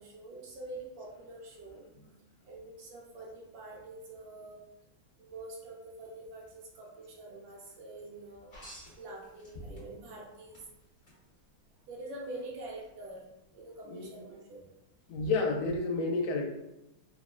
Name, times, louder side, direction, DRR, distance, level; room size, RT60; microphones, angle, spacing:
voice 1, 0.0-1.8 2.4-4.6 5.2-8.6 9.0-10.6 11.9-14.7, right 2 dB, 75° right, -2 dB, 1.2 m, -46 dB
sound 1, 8.5-10.1 10.5-11.2 12.7-12.9, equal, 35° left, 1.0 m, -48 dB
voice 2, 15.1-16.5, left 3 dB, 80° left, 1 dB, 1.4 m, -30 dB
3.6 x 2.0 x 2.4 m, 0.89 s
omnidirectional pair, 2.3 m